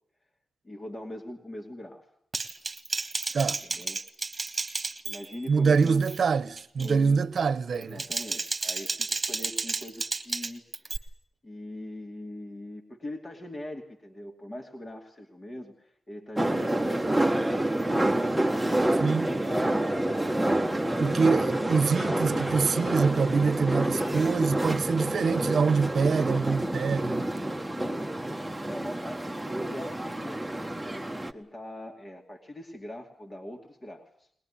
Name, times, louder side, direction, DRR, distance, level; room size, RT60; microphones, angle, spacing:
voice 1, 0.6-2.0 3.6-4.0 5.0-6.1 6.8-7.3 7.7-11.0 11.4-16.9 19.1-21.2 27.7-28.0 28.6-34.3, left 1 dB, 30° left, 2.6 m, -41 dB
Typing, 2.3-5.5 5.8-6.2 6.6-6.9 7.7-11.0, right 3 dB, 35° right, 1.7 m, -32 dB
voice 2, 5.5-8.0 19.0-19.3 21.0-27.3, right 5 dB, 70° right, 0.9 m, -25 dB
sound 1, 16.4-31.3, right 1 dB, 5° right, 1.5 m, -28 dB
21.0 x 21.0 x 9.9 m
wide cardioid pair, 115°, 0 cm